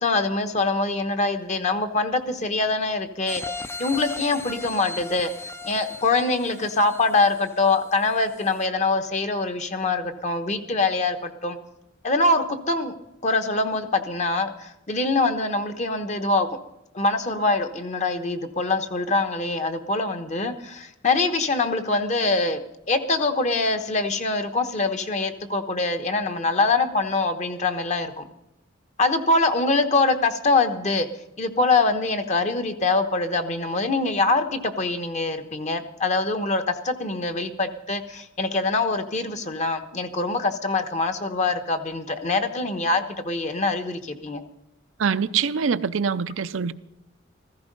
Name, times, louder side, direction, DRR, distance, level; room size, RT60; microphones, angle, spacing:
voice 1, 0.0-3.4 3.8-5.3 5.7-11.6 12.0-12.9 13.2-16.5 16.9-22.6 22.9-28.3 29.0-31.1 31.4-44.4, left 3 dB, 35° left, 1.1 m, -24 dB
sound 1, 3.3-8.0 8.4-8.5, left 3 dB, 10° left, 0.5 m, -37 dB
voice 2, 45.0-46.7, right 6 dB, 70° right, 0.5 m, -24 dB
15.0 x 15.0 x 5.3 m
head